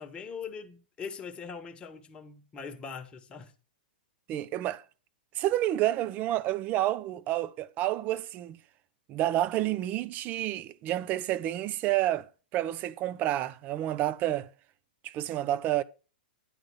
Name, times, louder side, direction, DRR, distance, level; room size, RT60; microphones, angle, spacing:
voice 1, 0.0-3.5, left 6 dB, 20° left, 1.3 m, -41 dB
voice 2, 4.3-4.8 5.3-8.6 9.1-12.3 12.5-14.5 15.0-15.8, right 14 dB, 35° right, 0.6 m, -29 dB
9.7 x 3.8 x 7.1 m
figure-of-eight pair, 105°, 5 cm